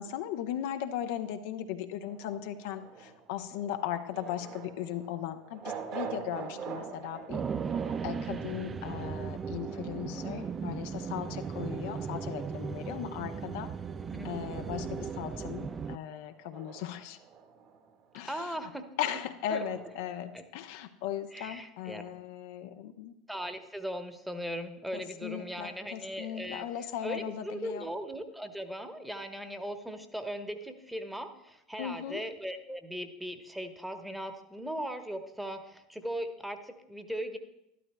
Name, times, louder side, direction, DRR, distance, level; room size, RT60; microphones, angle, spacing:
voice 1, 0.0-7.4 8.0-13.7 14.2-17.2 18.1-18.7 19.0-23.1 24.9-27.9 31.8-32.2, left 10 dB, 60° left, 7 dB, 0.6 m, -37 dB
sound 1, 2.0-14.6 14.9-20.2, right 6 dB, 50° right, 1.7 m, -47 dB
sound 2, 7.3-16.0, right 6 dB, 30° right, 0.4 m, -37 dB
voice 2, 18.2-18.8 19.5-19.6 20.3-20.4 21.3-22.0 23.3-37.4, equal, 5° right, 7 dB, 1.1 m, -38 dB
12.5 x 12.0 x 2.2 m, 0.85 s
figure-of-eight pair, 75°, 0 cm